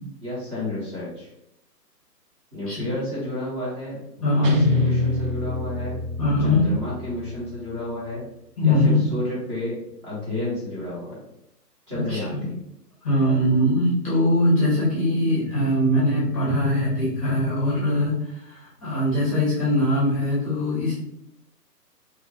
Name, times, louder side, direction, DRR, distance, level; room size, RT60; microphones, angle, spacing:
voice 1, 0.2-1.3 2.5-6.0 6.4-8.2 8.6-9.8 10.0-11.2 11.9-12.6, left 1 dB, 20° right, -9 dB, 0.8 m, -31 dB
voice 2, 4.2-4.6 6.2-6.7 8.6-9.0 12.1-12.4 13.0-20.9, left 1 dB, 20° left, -7 dB, 0.7 m, -21 dB
Guitar, 4.4-7.6, left 1 dB, 75° right, 0.6 m, -26 dB
2.8 x 2.5 x 2.6 m, 0.80 s
figure-of-eight pair, 140°, 49 cm